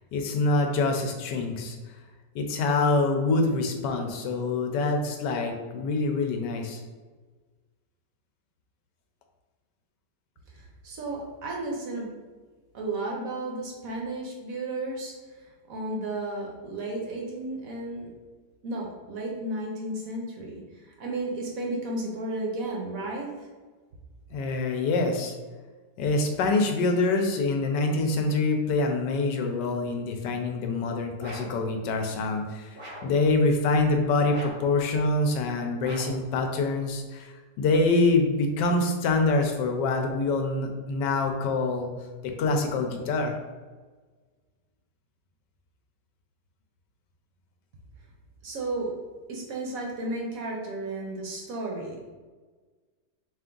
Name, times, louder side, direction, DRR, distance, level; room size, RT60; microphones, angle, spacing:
voice 1, 0.0-1.8 2.3-6.8 24.3-25.3 26.0-41.9 42.2-43.4, left 3 dB, 85° left, 4 dB, 1.2 m, -25 dB
voice 2, 10.5-12.1 12.7-18.1 18.6-23.5 48.4-48.9 49.3-52.1, right 2 dB, 65° right, -1 dB, 1.0 m, -33 dB
sound 1, 31.2-31.6 32.7-33.2 34.3-34.8 35.8-36.3, equal, 30° right, 0.5 m, -41 dB
3.4 x 3.0 x 3.7 m, 1.4 s
omnidirectional pair, 1.8 m